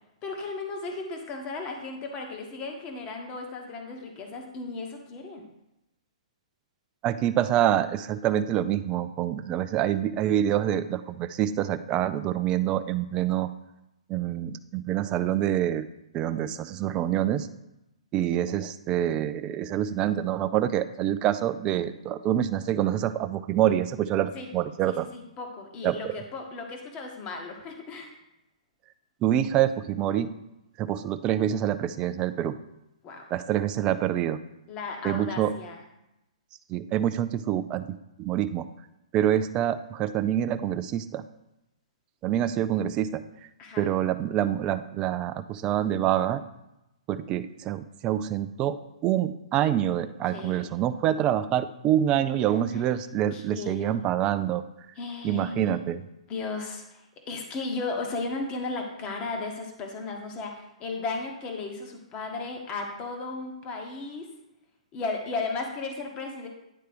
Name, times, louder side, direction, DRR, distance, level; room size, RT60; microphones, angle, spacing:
voice 1, 0.2-5.4 24.3-24.5 24.8-28.1 33.0-33.2 34.7-35.8 43.6-43.9 50.3-50.7 52.2-53.0 53.3-54.0 54.9-55.8 56.3-64.3 64.9-66.5, left 3 dB, 25° left, 3 dB, 1.2 m, -35 dB
voice 2, 7.0-13.5 14.1-15.8 16.1-17.5 18.1-25.1 25.8-26.1 29.2-30.3 30.8-32.5 33.3-34.4 35.0-35.5 36.7-37.9 38.2-38.7 39.1-41.2 42.2-43.2 43.8-46.4 47.1-54.6 55.2-56.0, right 11 dB, 25° right, 11 dB, 0.4 m, -26 dB
9.5 x 3.3 x 5.1 m, 0.89 s
hypercardioid pair, 130°, 4 cm